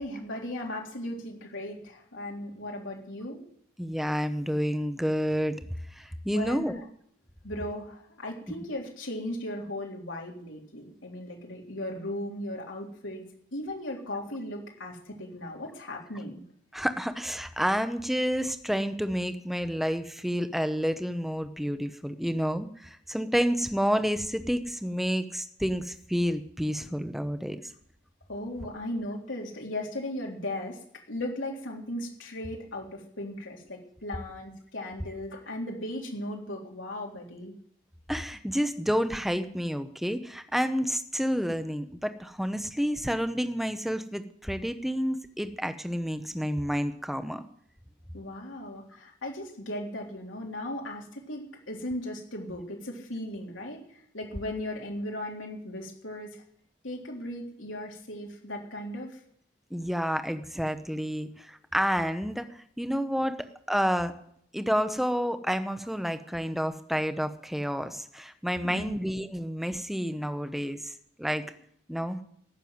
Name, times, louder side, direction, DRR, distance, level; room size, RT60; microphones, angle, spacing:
voice 1, 0.0-3.4 6.3-6.8 7.4-13.2 13.5-16.4 28.3-30.8 31.1-37.5 48.1-53.8 54.1-56.4 56.8-59.2 68.6-69.0, left 1 dB, 85° left, -1 dB, 3.7 m, -37 dB
voice 2, 3.8-5.6 5.9-6.8 16.7-27.7 38.1-47.4 59.7-63.4 63.7-64.1 64.5-70.9 71.2-71.4 71.9-72.2, equal, ahead, 9 dB, 0.8 m, -29 dB
15.0 x 6.9 x 9.3 m, 0.67 s
head